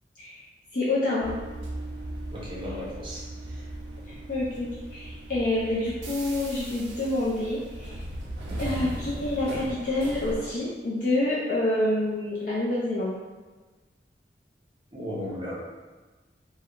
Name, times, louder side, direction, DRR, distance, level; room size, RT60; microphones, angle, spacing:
voice 1, 0.7-1.3 4.1-8.0 8.6-13.1, left 2 dB, 50° left, -8 dB, 0.4 m, -27 dB
sound 1, 1.2-10.6, right 1 dB, 85° right, 0.5 m, -38 dB
voice 2, 2.3-3.2 8.5-8.6 14.9-15.6, left 1 dB, 30° right, -5 dB, 0.6 m, -35 dB
2.3 x 2.1 x 2.9 m, 1.3 s
head